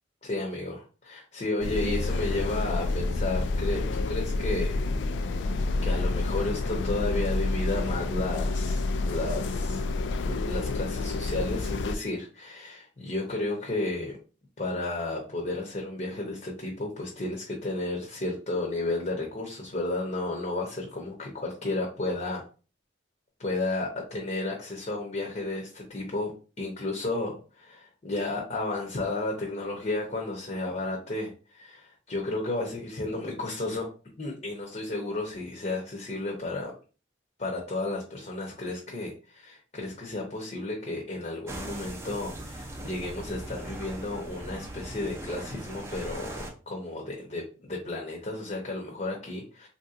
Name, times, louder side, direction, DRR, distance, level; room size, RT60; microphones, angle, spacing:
voice 1, 0.2-4.8 5.8-9.8 10.2-14.1 14.6-22.4 23.4-26.3 26.6-33.9 34.2-36.7 37.4-49.7, left 2 dB, 40° left, -1 dB, 0.7 m, -33 dB
sound 1, 1.6-12.0, left 2 dB, 75° left, 0.3 m, -29 dB
sound 2, 41.5-46.5, right 1 dB, 15° right, 0.5 m, -39 dB
3.5 x 2.7 x 2.4 m, 0.34 s
head